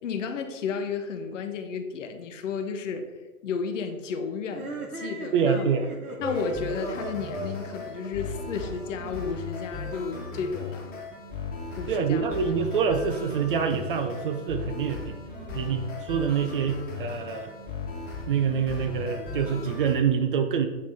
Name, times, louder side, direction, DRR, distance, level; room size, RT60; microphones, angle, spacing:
voice 1, 0.0-3.1 3.4-5.7 6.2-10.9 11.8-12.8, left 5 dB, 55° left, 6 dB, 0.9 m, -33 dB
sound 1, 4.5-9.1, right 2 dB, 75° right, 1.3 m, -36 dB
voice 2, 5.3-5.9 11.9-15.2 15.5-17.5 18.3-20.7, right 6 dB, 40° right, 8 dB, 0.4 m, -26 dB
sound 2, 6.2-20.0, left 4 dB, 20° left, 1.3 m, -37 dB
8.3 x 3.2 x 4.0 m, 1.3 s
figure-of-eight pair, 110°, 44 cm